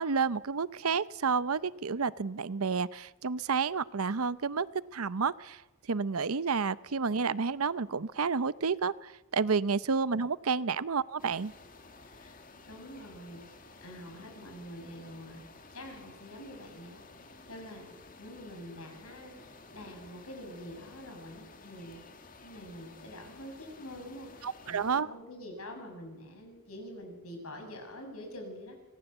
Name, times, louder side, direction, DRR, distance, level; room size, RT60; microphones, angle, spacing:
voice 1, 0.0-4.7 4.9-5.6 5.9-11.5 24.4-25.1, right 5 dB, 85° right, 18 dB, 0.7 m, -30 dB
sound 1, 11.2-25.0, left 3 dB, 40° left, 2.1 m, -53 dB
voice 2, 12.0-12.4 12.7-13.4 13.8-15.5 15.7-17.0 17.5-22.1 22.4-28.8, equal, 85° left, 4 dB, 7.3 m, -46 dB
25.0 x 18.5 x 8.1 m, 1.1 s
head